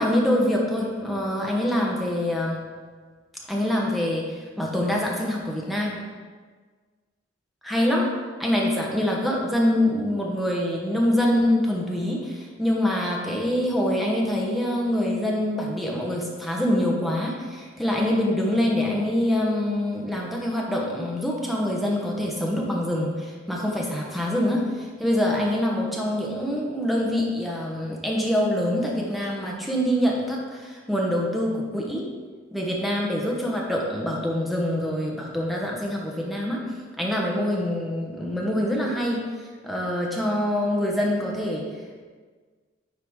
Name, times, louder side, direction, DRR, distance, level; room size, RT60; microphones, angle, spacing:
voice 1, 0.0-2.7 3.5-6.0 7.6-8.1 8.4-32.1 32.5-39.3 39.6-41.7, left 1 dB, ahead, -2 dB, 1.0 m, -25 dB
9.5 x 4.8 x 3.6 m, 1.5 s
head